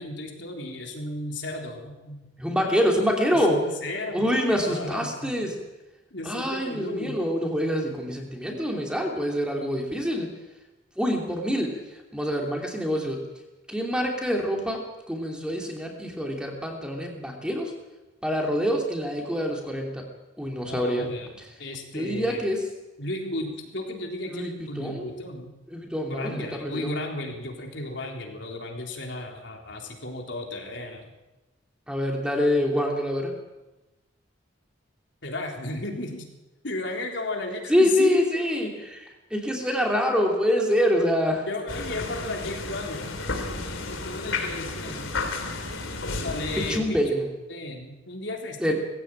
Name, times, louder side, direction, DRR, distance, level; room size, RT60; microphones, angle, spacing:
voice 1, 0.0-2.2 3.3-5.3 6.1-7.2 20.7-21.3 21.6-22.4 23.0-25.5 26.1-31.1 35.2-36.2 36.6-38.2 41.5-43.1 43.9-45.1 46.2-47.2 47.5-48.7, left 2 dB, 70° left, 1 dB, 3.7 m, -34 dB
voice 2, 2.4-3.6 4.1-5.5 6.2-10.3 11.0-11.8 12.1-13.2 13.7-17.7 18.2-20.0 20.4-21.1 21.4-21.5 21.9-22.7 24.3-25.1 25.7-26.9 31.9-33.3 37.7-38.7 39.3-41.5 46.6-47.3 48.6-48.7, equal, 5° right, 0 dB, 3.0 m, -25 dB
sound 1, 41.7-46.8, left 3 dB, 85° left, 3.4 m, -32 dB
20.0 x 16.0 x 8.9 m, 1.1 s
head